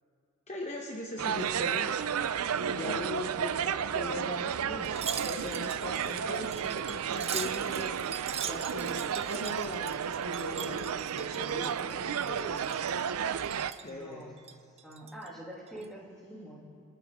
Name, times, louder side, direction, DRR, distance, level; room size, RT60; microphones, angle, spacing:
voice 1, 0.5-2.0 2.3-2.4 2.7-8.0 8.4-12.7 12.9-13.2 13.8-14.4, left 2 dB, 30° left, 0 dB, 1.0 m, -41 dB
sound 1, 1.2-13.7, right 7 dB, 80° right, 0.5 m, -32 dB
Wind chime, 4.8-11.9 12.2-13.0 13.4-13.9 14.4-15.3 15.7-15.9, right 8 dB, 30° right, 0.5 m, -41 dB
voice 2, 13.8-14.3 14.8-16.9, right 1 dB, ahead, -5 dB, 2.6 m, -46 dB
26.0 x 9.9 x 3.6 m, 2.5 s
head